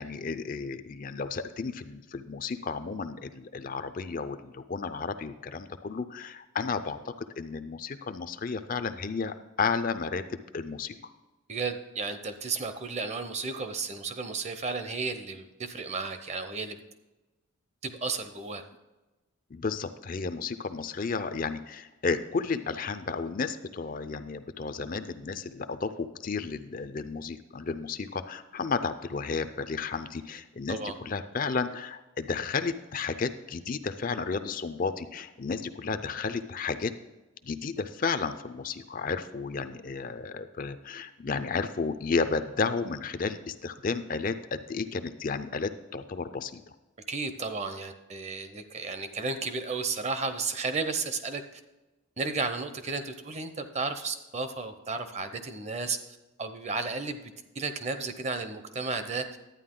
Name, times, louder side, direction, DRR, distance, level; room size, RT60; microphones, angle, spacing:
voice 1, 0.0-11.0 19.5-36.9 37.4-46.6, left 4 dB, 40° left, 10 dB, 0.4 m, -32 dB
voice 2, 11.5-16.8 17.8-18.6 30.7-31.0 47.1-51.4 52.2-56.0 56.4-57.2 57.5-59.4, right 4 dB, 30° right, 9 dB, 0.7 m, -33 dB
11.5 x 9.2 x 3.8 m, 1.1 s
head